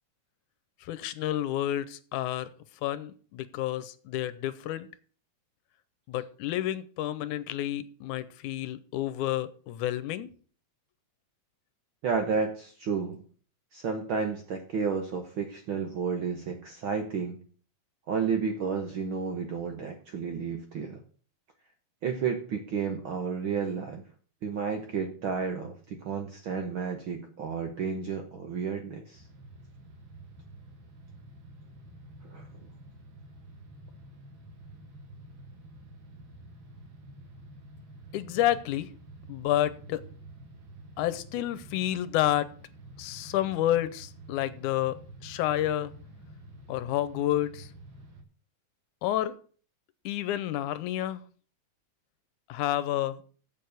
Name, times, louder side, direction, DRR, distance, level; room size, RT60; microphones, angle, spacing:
voice 1, 0.8-2.5 2.8-4.9 6.1-10.3 38.1-38.9 39.3-40.0 41.0-42.5 43.0-45.0 45.2-45.9 46.7-47.7 49.0-49.4 50.1-51.2 52.5-53.2, left 13 dB, 85° left, 14 dB, 2.2 m, -30 dB
voice 2, 12.0-13.2 13.7-17.4 18.1-21.0 22.0-24.0 24.4-29.2 32.3-32.5, right 6 dB, 65° right, 5 dB, 1.3 m, -31 dB
sound 1, 29.1-48.2, right 1 dB, 45° right, 2.1 m, -49 dB
7.3 x 6.7 x 7.9 m, 0.42 s
omnidirectional pair, 3.5 m